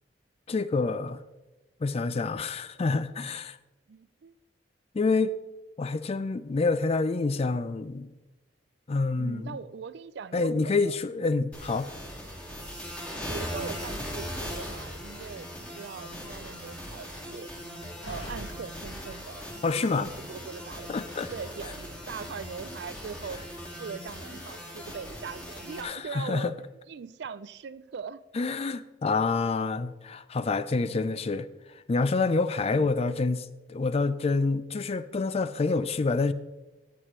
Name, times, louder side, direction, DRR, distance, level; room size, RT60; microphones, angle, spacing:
voice 1, 0.5-1.2 1.8-3.6 4.9-5.4 5.8-8.1 8.9-9.6 10.3-11.9 19.6-20.1 20.9-21.3 25.8-26.5 28.3-31.5 31.9-36.3, left 3 dB, 35° left, 0.4 m, -27 dB
voice 2, 3.9-4.4 9.2-11.0 13.3-17.5 18.0-20.9 21.3-23.4 23.8-26.5 26.9-28.6 30.8-31.0 32.6-32.9, right 6 dB, 65° right, 0.4 m, -41 dB
sound 1, 11.5-25.8, equal, 5° left, 2.0 m, -39 dB
Slam, 14.1-19.6, left 1 dB, 85° left, 1.8 m, -48 dB
14.5 x 8.1 x 3.1 m
head